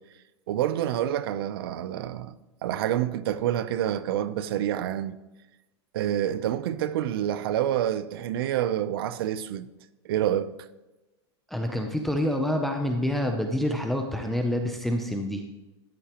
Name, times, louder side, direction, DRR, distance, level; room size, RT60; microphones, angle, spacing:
voice 1, 0.5-2.4 2.6-5.2 5.9-9.7 10.0-10.5, right 11 dB, 55° right, 0.6 m, -27 dB
voice 2, 11.5-15.4, left 1 dB, ahead, 0.5 m, -27 dB
13.5 x 10.0 x 3.0 m
supercardioid pair, 170°, 14 cm